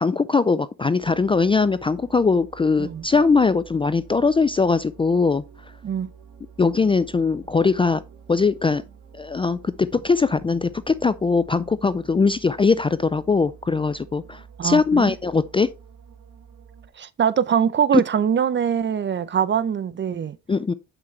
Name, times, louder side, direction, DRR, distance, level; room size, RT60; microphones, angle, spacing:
voice 1, 0.0-5.4 6.6-8.0 8.3-8.8 9.1-15.7 20.5-20.7, left 4 dB, 20° left, 0.3 m, -21 dB
sound 1, 1.0-16.9, right 6 dB, 75° right, 2.1 m, -48 dB
voice 2, 14.6-15.1 17.0-20.4, right 8 dB, 40° right, 0.6 m, -23 dB
7.6 x 5.9 x 3.2 m
cardioid pair, 90°, 30 cm